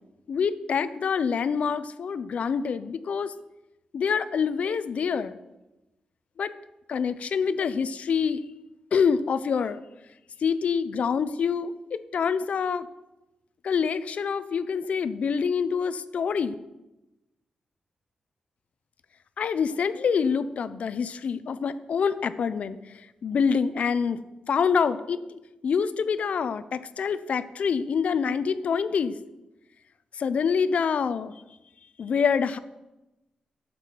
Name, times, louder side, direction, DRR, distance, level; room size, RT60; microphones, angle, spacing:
voice 1, 0.3-3.3 3.9-5.4 6.4-6.5 6.9-8.4 8.9-9.8 10.4-12.9 13.6-16.5 19.4-22.8 23.2-24.2 24.5-29.2 30.2-31.3 32.0-32.6, left 6 dB, 65° left, 13 dB, 0.6 m, -26 dB
12.5 x 7.8 x 4.6 m, 0.99 s
cardioid pair, 70°, 2 cm